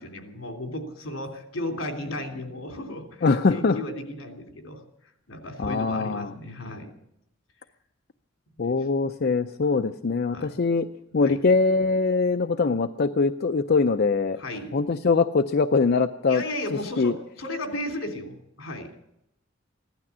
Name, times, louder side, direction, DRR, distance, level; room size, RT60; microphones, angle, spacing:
voice 1, 0.0-4.8 5.3-6.9 8.6-8.7 10.3-10.5 11.1-11.4 14.4-14.7 16.3-18.9, left 1 dB, 75° left, 3 dB, 3.2 m, -35 dB
voice 2, 3.2-3.8 5.6-6.3 8.6-10.9 11.1-14.4 14.7-16.4 17.0-17.1, left 4 dB, 50° left, 7 dB, 0.5 m, -22 dB
16.0 x 12.5 x 7.3 m, 0.78 s
head